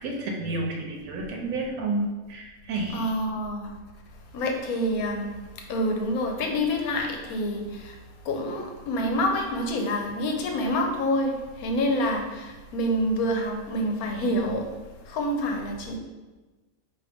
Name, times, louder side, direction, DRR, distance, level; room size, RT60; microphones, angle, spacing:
voice 1, 0.0-3.1, right 2 dB, 80° right, 0 dB, 1.1 m, -30 dB
voice 2, 2.9-3.7 4.3-8.0 8.2-14.7 15.1-16.0, equal, 90° left, 2 dB, 1.2 m, -27 dB
4.8 x 2.8 x 3.4 m, 1.2 s
omnidirectional pair, 1.5 m